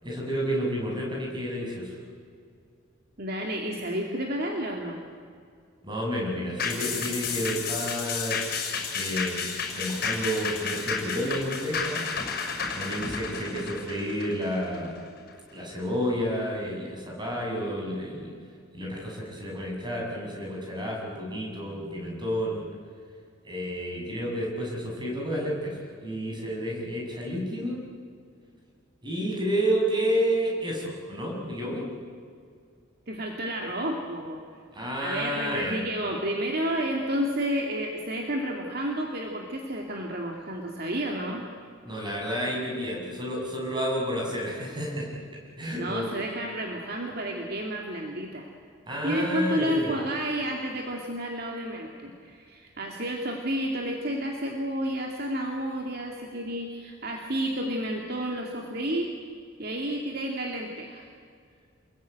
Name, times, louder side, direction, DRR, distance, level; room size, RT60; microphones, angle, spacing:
voice 1, 0.0-2.0 5.8-8.4 8.9-12.1 12.7-15.0 15.5-18.3 18.7-22.6 23.4-27.8 29.0-31.9 34.7-35.8 41.9-45.2 45.6-46.0 48.9-50.0, equal, 20° right, -2 dB, 7.1 m, -30 dB
voice 2, 3.2-5.0 33.1-34.4 35.0-41.4 45.7-48.5 49.0-59.1 59.6-61.0, equal, 50° right, 1 dB, 2.4 m, -31 dB
sound 1, 6.6-15.3 15.7-15.8, left 5 dB, 45° left, 5.8 m, -32 dB
28.5 x 21.5 x 9.1 m, 2.2 s
head